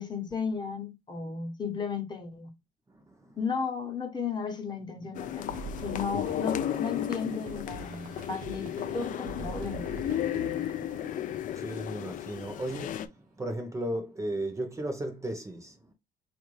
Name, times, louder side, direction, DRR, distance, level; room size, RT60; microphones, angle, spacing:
voice 1, 0.0-2.5 3.4-9.8, left 5 dB, 25° left, 1.0 m, -34 dB
voice 2, 2.9-3.4 10.3-15.9, right 1 dB, 20° right, 0.7 m, -36 dB
sound 1, 5.1-13.1, left 11 dB, 50° left, 0.4 m, -34 dB
sound 2, 5.5-11.5, right 4 dB, 55° right, 0.7 m, -44 dB
4.0 x 2.5 x 3.1 m
cardioid pair, 110°, 17 cm